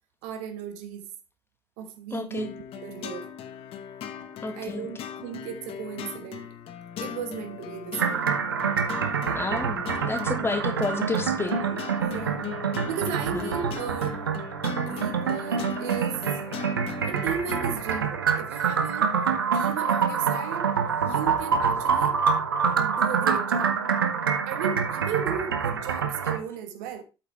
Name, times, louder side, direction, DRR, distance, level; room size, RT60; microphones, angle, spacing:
voice 1, 0.2-1.1 1.8-3.3 4.5-6.5 7.0-8.3 10.4-10.5 11.5-12.5 12.8-14.3 14.6-16.2 17.0-19.1 19.5-20.7 21.0-22.2 22.7-23.8 24.4-27.0, right 8 dB, 70° right, 1.1 m, -35 dB
voice 2, 2.1-2.5 4.4-4.9 9.3-11.6 13.3-13.5, left 3 dB, 20° left, 1.7 m, -31 dB
sound 1, 2.4-17.8, left 8 dB, 55° left, 1.1 m, -38 dB
sound 2, 8.0-26.4, right 6 dB, 90° right, 0.8 m, -26 dB
8.4 x 5.7 x 4.2 m
hypercardioid pair, 60°, 11 cm